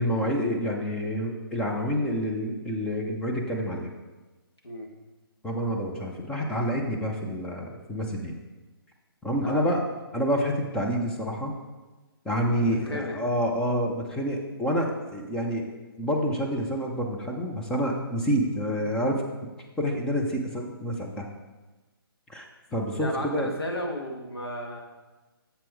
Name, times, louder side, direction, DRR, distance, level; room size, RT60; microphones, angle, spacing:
voice 1, 0.0-3.9 5.4-8.3 9.2-9.8 10.1-11.5 12.2-15.7 16.0-19.2 19.8-21.3 22.3-22.4 22.7-23.5, equal, 5° left, -1 dB, 0.7 m, -28 dB
voice 2, 12.8-13.2 22.9-24.8, left 1 dB, 85° left, 0 dB, 1.8 m, -34 dB
6.9 x 6.0 x 4.5 m, 1.2 s
figure-of-eight pair, 140°, 13 cm